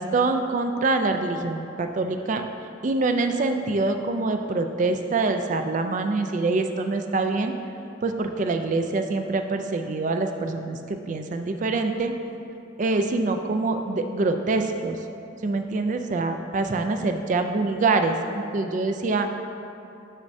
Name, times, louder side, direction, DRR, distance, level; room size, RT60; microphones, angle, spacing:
voice 1, 0.0-2.4 2.8-7.5 8.0-12.1 12.8-15.0 15.4-19.3, right 3 dB, 40° right, 6 dB, 0.3 m, -25 dB
7.3 x 6.4 x 2.6 m, 2.9 s
head